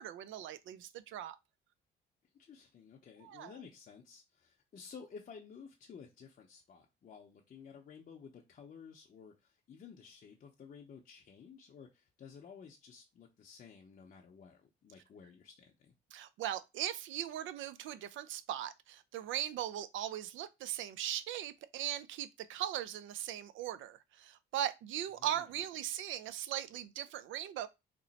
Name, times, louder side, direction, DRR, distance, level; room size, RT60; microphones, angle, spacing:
voice 1, 0.0-1.4 3.2-3.5 16.1-27.7, right 11 dB, 75° right, 0.4 m, -39 dB
voice 2, 2.4-15.9 25.2-25.5, left 6 dB, 45° left, 0.6 m, -54 dB
2.9 x 2.0 x 4.0 m
cardioid pair, 90°, 20 cm